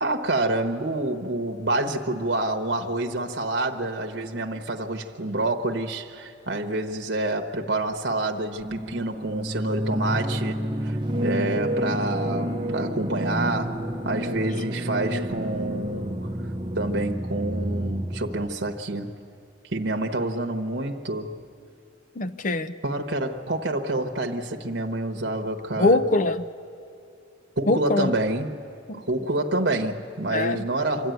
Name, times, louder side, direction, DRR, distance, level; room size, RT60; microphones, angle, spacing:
voice 1, 0.0-16.3 16.7-19.1 19.7-21.3 22.8-26.0 27.6-28.6 28.9-31.1, right 2 dB, 60° right, 1.1 m, -28 dB
sound 1, 8.5-18.5, equal, 25° right, 0.8 m, -29 dB
voice 2, 22.2-22.7 25.8-26.4 27.7-28.1 28.9-29.0 30.3-30.6, left 2 dB, 40° left, 0.6 m, -22 dB
26.0 x 12.5 x 9.2 m
head